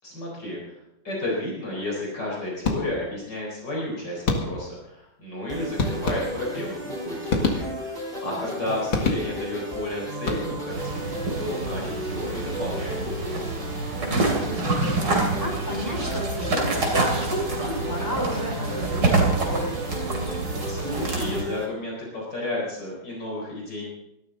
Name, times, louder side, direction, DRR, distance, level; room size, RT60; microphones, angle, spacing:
voice 1, 0.0-0.8 1.0-13.5 20.7-23.9, left 1 dB, 55° left, -3 dB, 4.9 m, -32 dB
sound 1, 2.6-3.2 4.3-4.8 5.8-6.6 7.3-8.1 8.9-9.6 10.1-10.8, left 3 dB, 75° left, 2.7 m, -27 dB
sound 2, 5.5-21.7, right 1 dB, 25° right, 3.4 m, -34 dB
sound 3, 10.7-21.4, right 2 dB, 60° right, 3.7 m, -27 dB
voice 2, 14.0-19.8, equal, 10° left, 0 dB, 4.0 m, -32 dB
19.0 x 13.5 x 3.9 m, 0.85 s
omnidirectional pair, 2.2 m